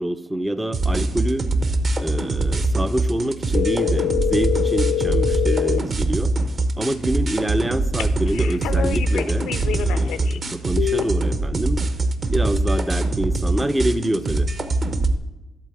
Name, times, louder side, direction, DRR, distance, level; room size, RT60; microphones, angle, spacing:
voice 1, 0.0-1.5 2.0-6.3 6.8-11.8 12.3-14.5, right 1 dB, 10° right, 12 dB, 0.5 m, -26 dB
sound 1, 0.7-15.2, right 2 dB, 40° right, 1.0 m, -23 dB
sound 2, 3.5-5.8 8.0-10.4 10.8-11.0, left 12 dB, 85° left, 0.5 m, -25 dB
11.5 x 4.1 x 7.7 m, 1.0 s
cardioid pair, 90°, 0 cm